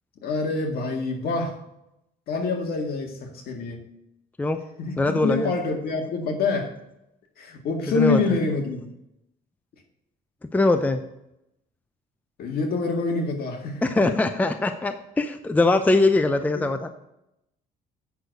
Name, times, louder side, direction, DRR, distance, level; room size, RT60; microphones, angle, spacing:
voice 1, 0.2-1.6 2.3-3.8 4.8-6.7 7.4-8.9 12.4-14.2 16.5-16.6, left 3 dB, 65° left, 3 dB, 2.0 m, -26 dB
voice 2, 5.0-5.5 7.9-8.2 10.5-11.0 13.8-16.9, left 2 dB, 10° left, 9 dB, 0.6 m, -22 dB
8.2 x 6.3 x 5.2 m, 0.85 s
cardioid pair, 110°, 17 cm